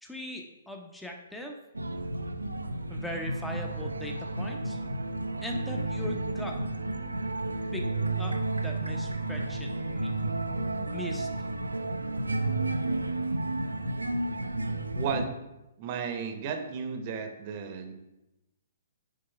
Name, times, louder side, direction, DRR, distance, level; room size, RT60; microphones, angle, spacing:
voice 1, 0.0-1.6 2.9-4.8 5.4-6.6 7.7-7.9 8.2-10.1 10.9-11.3, left 1 dB, 5° left, 1 dB, 0.7 m, -40 dB
sound 1, 1.7-15.3, right 2 dB, 85° right, 0.5 m, -32 dB
voice 2, 15.0-15.4 15.8-17.9, right 6 dB, 40° right, 6 dB, 0.8 m, -34 dB
6.4 x 3.8 x 5.7 m, 0.94 s
figure-of-eight pair, 125°, 0 cm